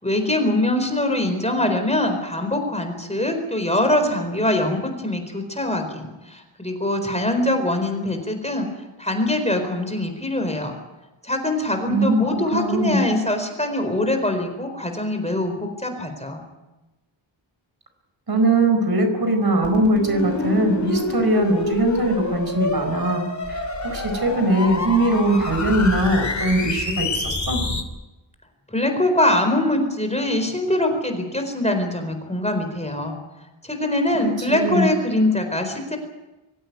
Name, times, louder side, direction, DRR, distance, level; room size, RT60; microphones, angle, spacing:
voice 1, 0.0-8.7 9.0-10.7 11.2-16.4 28.7-33.2 33.6-36.0, left 1 dB, 15° left, 5 dB, 4.3 m, -23 dB
voice 2, 11.9-12.2 12.5-13.0 18.3-27.6 34.5-34.9, right 1 dB, 50° right, 6 dB, 4.7 m, -21 dB
sound 1, 19.6-27.8, left 3 dB, 35° left, 2.8 m, -27 dB
24.0 x 16.0 x 9.5 m, 1.1 s
wide cardioid pair, 120°, 48 cm